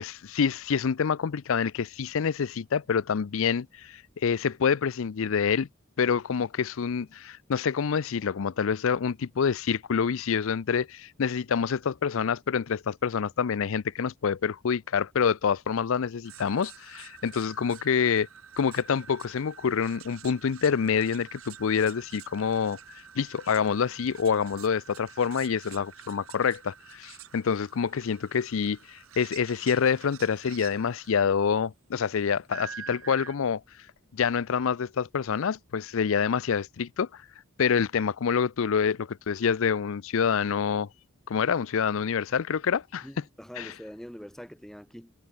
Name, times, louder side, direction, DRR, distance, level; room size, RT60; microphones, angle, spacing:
voice 1, 0.0-5.7 6.0-18.3 18.6-33.6 34.1-37.2 37.6-40.9 41.3-43.1 43.6-43.7, left 6 dB, 70° left, 0.5 m, -27 dB
sound 1, 16.3-31.2 32.5-33.4, right 8 dB, 80° right, 3.4 m, -48 dB
voice 2, 43.0-45.1, equal, ahead, 0.8 m, -44 dB
head